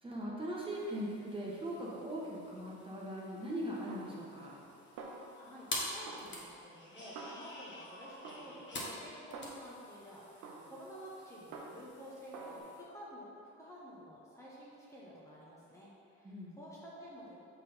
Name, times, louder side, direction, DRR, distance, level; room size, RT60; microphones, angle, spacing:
voice 1, 0.0-4.5 16.2-16.6, equal, 15° right, -5 dB, 1.3 m, -40 dB
sound 1, 0.5-12.8, left 1 dB, 40° left, 1.3 m, -48 dB
Snare drum, 3.9-4.7 5.0-5.7 6.1-7.8 8.2-9.9 10.4-12.0 12.3-12.6, right 3 dB, 80° right, 0.8 m, -50 dB
voice 2, 5.3-17.4, equal, 10° left, -7 dB, 1.1 m, -51 dB
6.1 x 3.8 x 4.4 m, 2.5 s
cardioid pair, 90°, 30 cm